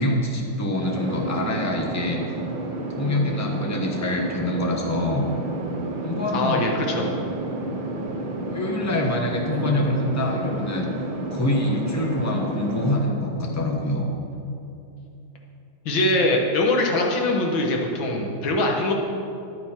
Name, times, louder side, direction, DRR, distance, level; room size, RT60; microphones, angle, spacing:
voice 1, 0.0-2.2 2.9-5.3 6.0-6.6 8.5-10.9 11.3-14.1, left 1 dB, 15° left, 0 dB, 0.7 m, -25 dB
sound 1, 0.8-13.0, right 2 dB, 70° right, 1.9 m, -30 dB
voice 2, 6.3-7.1 15.9-18.9, left 2 dB, 75° left, 0 dB, 2.0 m, -22 dB
10.5 x 9.4 x 4.4 m, 2.7 s
omnidirectional pair, 2.2 m